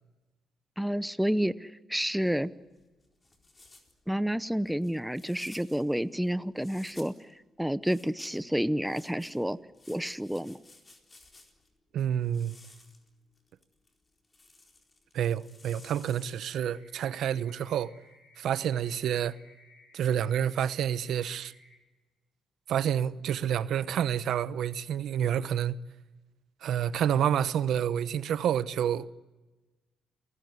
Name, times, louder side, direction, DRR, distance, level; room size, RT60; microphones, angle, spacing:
voice 1, 0.8-2.5 4.1-7.2 7.6-9.6 9.9-10.6, equal, 5° right, 0.8 m, -29 dB
sound 1, 2.2-7.3 7.8-11.7 12.2-16.6, left 2 dB, 25° left, 4.2 m, -56 dB
voice 2, 11.9-12.5 15.1-17.9 18.4-19.4 19.9-21.5 22.7-25.8 26.6-29.1, right 9 dB, 75° right, 0.9 m, -28 dB
sound 2, 16.7-21.7, left 2 dB, 80° left, 7.7 m, -59 dB
29.0 x 18.5 x 9.6 m
cardioid pair, 90°, 0 cm